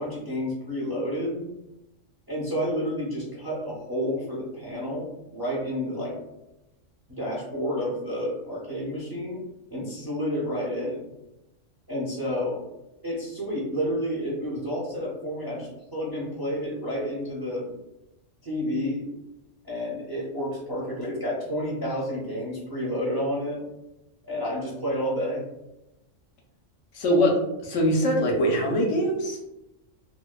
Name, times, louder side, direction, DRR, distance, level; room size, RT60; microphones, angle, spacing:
voice 1, 0.0-1.5 2.3-6.2 7.1-9.4 9.7-11.1 11.9-12.6 13.0-17.7 18.4-19.1 19.6-23.6 24.3-25.4, equal, 25° right, -7 dB, 0.5 m, -30 dB
voice 2, 26.9-29.4, equal, 75° left, -1 dB, 0.9 m, -23 dB
2.6 x 2.1 x 2.2 m, 0.92 s
omnidirectional pair, 1.3 m